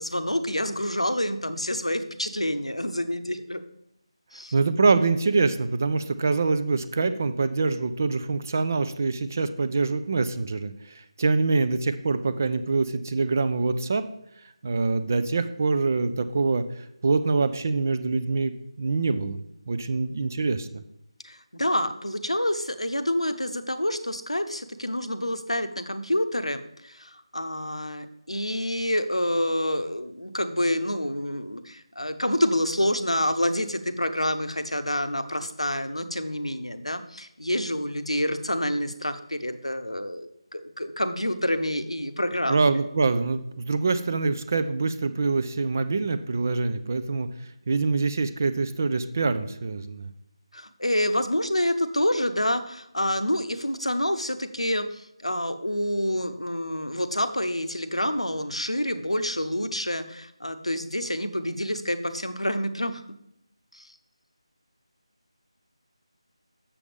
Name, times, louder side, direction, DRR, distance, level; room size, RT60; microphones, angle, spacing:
voice 1, 0.0-3.6 4.3-4.5 21.2-42.8 50.5-63.0 63.7-63.9, left 1 dB, 80° left, 9 dB, 0.8 m, -28 dB
voice 2, 4.5-14.0 14.6-16.6 17.0-18.5 18.8-20.8 42.5-47.3 47.7-50.1, right 3 dB, 30° right, 11 dB, 0.4 m, -25 dB
7.0 x 6.9 x 3.5 m, 0.80 s
figure-of-eight pair, 160°, 3 cm